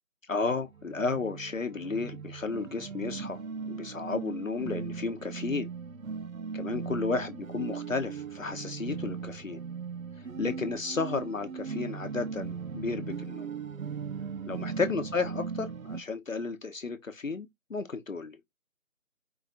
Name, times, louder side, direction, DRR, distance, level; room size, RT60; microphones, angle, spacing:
voice 1, 0.3-3.4 3.7-5.7 6.5-9.6 10.4-13.5 14.5-18.4, left 4 dB, 65° left, 1.0 m, -33 dB
sound 1, 0.6-16.0, right 6 dB, 70° right, 0.8 m, -38 dB
4.9 x 2.5 x 4.1 m
figure-of-eight pair, 175°, 42 cm